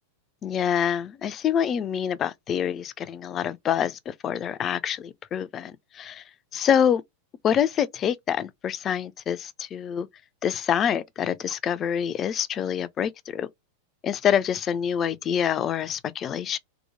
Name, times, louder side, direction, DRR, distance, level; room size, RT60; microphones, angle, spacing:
voice 1, 0.4-6.2 6.5-7.0 7.4-10.1 10.4-13.5 14.0-16.6, left 8 dB, 30° left, 0.3 m, -26 dB
2.8 x 2.1 x 2.6 m
figure-of-eight pair, 90°, 0 cm